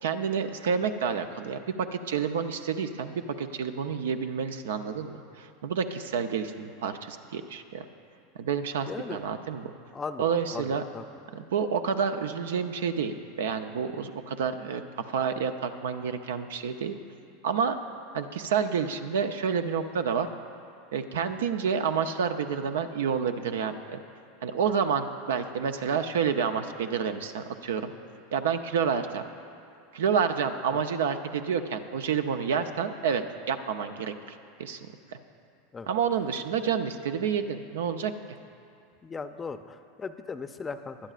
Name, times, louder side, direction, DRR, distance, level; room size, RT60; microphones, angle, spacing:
voice 1, 0.0-7.9 8.4-9.7 10.2-10.8 11.3-17.0 17.4-17.8 18.1-20.3 20.9-24.0 24.4-27.9 28.3-29.2 29.9-34.8 35.9-38.1, right 6 dB, 80° right, 8 dB, 0.6 m, -29 dB
voice 2, 8.9-9.2 9.9-11.0 30.7-30.8 35.7-35.9 36.6-36.7 39.0-41.1, left 4 dB, 20° left, 10 dB, 0.6 m, -38 dB
20.0 x 11.5 x 2.5 m, 2.4 s
hypercardioid pair, 95°, 0 cm